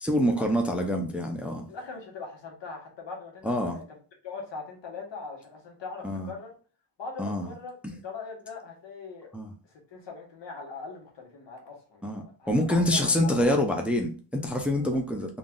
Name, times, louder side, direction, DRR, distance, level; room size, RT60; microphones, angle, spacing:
voice 1, 0.0-1.6 3.4-3.8 6.0-6.3 7.2-7.5 7.8-8.0 9.3-9.5 12.0-15.4, left 1 dB, 5° right, 0.4 m, -26 dB
voice 2, 1.7-4.0 4.2-6.5 7.0-9.3 9.9-12.0 12.4-13.1 13.4-13.5 14.7-14.9, left 4 dB, 85° left, 1.4 m, -41 dB
3.7 x 2.4 x 3.6 m
wide cardioid pair, 140°, 42 cm